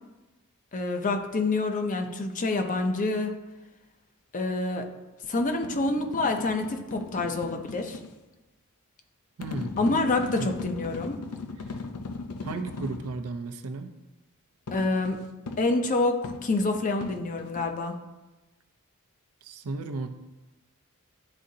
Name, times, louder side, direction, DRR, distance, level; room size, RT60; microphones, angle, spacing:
voice 1, 0.7-3.4 4.3-4.9 5.3-8.0 9.8-11.2 14.7-15.2 15.6-18.0, left 2 dB, 35° left, 5 dB, 0.6 m, -27 dB
sound 1, 5.2-8.1 9.4-13.1 14.7-17.7, left 3 dB, 90° left, 0.6 m, -38 dB
voice 2, 9.4-9.8 10.3-10.5 12.4-13.9 19.4-20.1, right 3 dB, 75° right, 7 dB, 0.6 m, -34 dB
10.5 x 3.7 x 2.7 m, 1.1 s
head